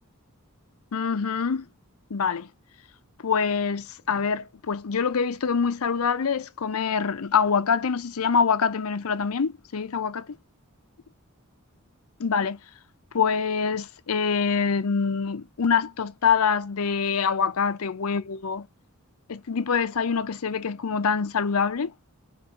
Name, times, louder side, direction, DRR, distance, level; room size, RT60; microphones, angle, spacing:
voice 1, 0.9-1.7 2.1-2.5 3.2-10.3 12.2-12.6 13.1-18.7 19.3-21.9, left 6 dB, 80° left, 0.6 m, -25 dB
5.1 x 2.5 x 3.5 m
head